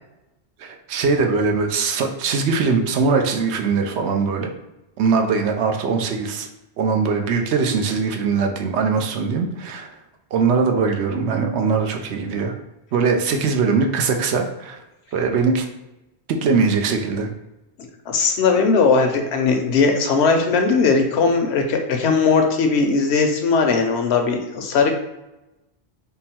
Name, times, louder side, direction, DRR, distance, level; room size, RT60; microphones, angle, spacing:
voice 1, 0.6-4.5 5.0-6.5 6.8-9.9 10.3-12.5 12.9-14.8 15.1-15.6 16.3-17.3, right 5 dB, 85° right, 4 dB, 0.9 m, -21 dB
voice 2, 18.1-24.9, left 4 dB, 75° left, 4 dB, 0.9 m, -18 dB
3.7 x 2.0 x 4.2 m, 0.96 s
omnidirectional pair, 1.1 m